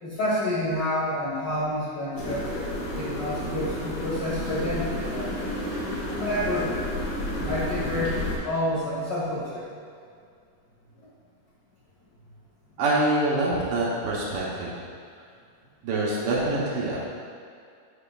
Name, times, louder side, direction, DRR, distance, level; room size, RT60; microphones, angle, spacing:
voice 1, 0.0-5.3 6.1-6.8 7.4-8.1 8.4-9.6, left 1 dB, 60° left, -10 dB, 1.1 m, -29 dB
sound 1, 2.2-8.4, left 1 dB, 75° left, 2.9 m, -31 dB
voice 2, 12.8-14.7 15.8-17.1, right 2 dB, 80° right, -5 dB, 1.3 m, -25 dB
9.3 x 5.5 x 2.3 m, 2.3 s
omnidirectional pair, 3.9 m